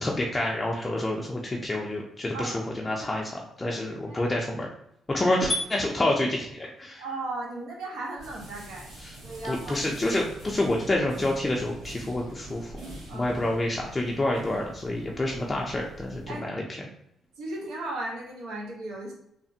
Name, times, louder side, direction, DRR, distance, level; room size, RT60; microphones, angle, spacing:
voice 1, 0.0-4.7 5.1-7.0 9.0-9.1 9.5-12.7 13.1-16.6, left 1 dB, 20° left, -1 dB, 0.4 m, -28 dB
voice 2, 3.7-4.2 7.0-8.9 9.2-10.1 13.1-13.3 16.3-16.5 17.4-19.1, right 2 dB, 90° right, -2 dB, 0.8 m, -36 dB
sound 1, 8.2-16.4, right 1 dB, 75° right, 1.2 m, -44 dB
3.2 x 2.1 x 2.7 m, 0.74 s
cardioid pair, 90°, 0 cm